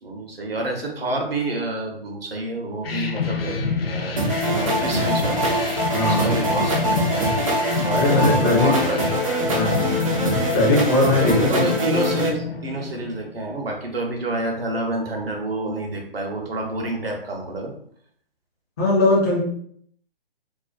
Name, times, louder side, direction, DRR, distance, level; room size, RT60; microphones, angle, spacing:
voice 1, 0.0-5.4 5.6-7.5 7.8-9.0 9.6-9.7 11.0-17.7, right 2 dB, 75° right, 1 dB, 0.7 m, -28 dB
sound 1, 2.8-13.4, left 4 dB, 80° left, 0.5 m, -27 dB
sound 2, 4.2-12.3, right 1 dB, 35° right, 0.4 m, -24 dB
voice 2, 5.9-6.3 7.9-8.8 9.5-9.9 10.5-11.6 18.8-19.4, left 2 dB, 20° left, -7 dB, 0.5 m, -20 dB
2.4 x 2.1 x 2.4 m, 0.64 s
figure-of-eight pair, 135°, 30 cm